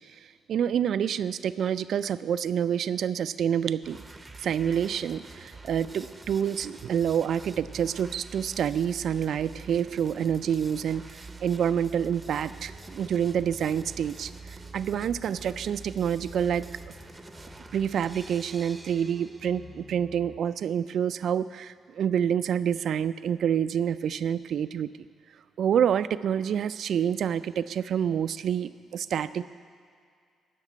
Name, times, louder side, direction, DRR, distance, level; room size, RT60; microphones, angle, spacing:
voice 1, 0.5-4.0 4.4-11.0 11.4-14.3 14.7-16.7 17.7-24.9 25.6-29.4, right 8 dB, 65° right, 14 dB, 0.3 m, -27 dB
sound 1, 3.8-19.8, right 3 dB, 20° right, 0.7 m, -46 dB
sound 2, 12.4-20.4, left 2 dB, 35° left, 2.8 m, -52 dB
13.0 x 5.9 x 9.1 m, 2.1 s
cardioid pair, 90°, 0 cm